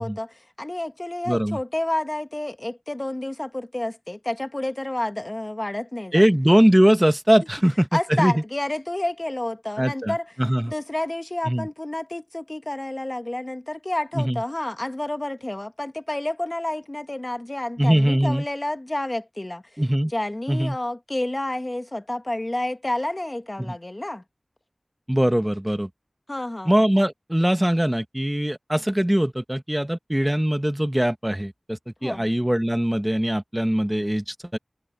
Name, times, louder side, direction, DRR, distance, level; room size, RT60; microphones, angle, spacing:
voice 1, 0.0-6.2 7.9-10.3 10.7-24.2 26.3-26.8 32.0-32.3, left 1 dB, 35° left, 1.3 m, -30 dB
voice 2, 1.3-1.6 6.1-8.3 9.8-10.1 10.4-10.7 11.5-11.7 14.1-14.4 17.8-18.4 19.8-20.1 20.5-20.8 23.7-23.8 25.1-25.9 26.7-34.6, equal, 15° right, 1.4 m, -21 dB
wide cardioid pair, 45°, 0 cm